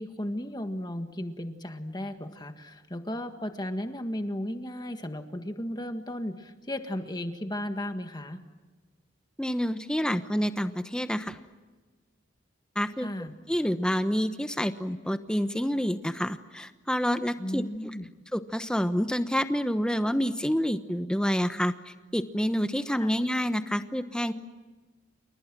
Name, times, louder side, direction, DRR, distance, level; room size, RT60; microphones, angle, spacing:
voice 1, 0.0-8.4 13.0-13.3 17.4-18.1 23.0-23.1, left 1 dB, 20° left, 7 dB, 1.7 m, -35 dB
voice 2, 9.4-11.4 12.7-13.1 13.5-17.6 18.3-24.3, equal, 5° left, 9 dB, 1.1 m, -28 dB
29.5 x 29.0 x 6.2 m, 1.3 s
head